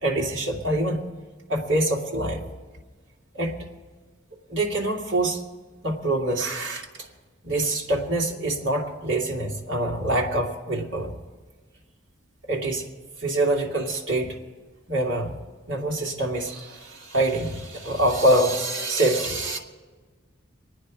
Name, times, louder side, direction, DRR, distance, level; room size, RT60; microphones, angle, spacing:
voice 1, 0.0-1.0 1.5-2.4 3.3-3.6 4.5-5.4 5.8-6.9 7.4-11.1 12.5-12.8 13.2-14.4 14.9-15.4 15.7-19.6, right 1 dB, 70° right, -1 dB, 2.5 m, -25 dB
26.5 x 9.6 x 5.0 m, 1.4 s
head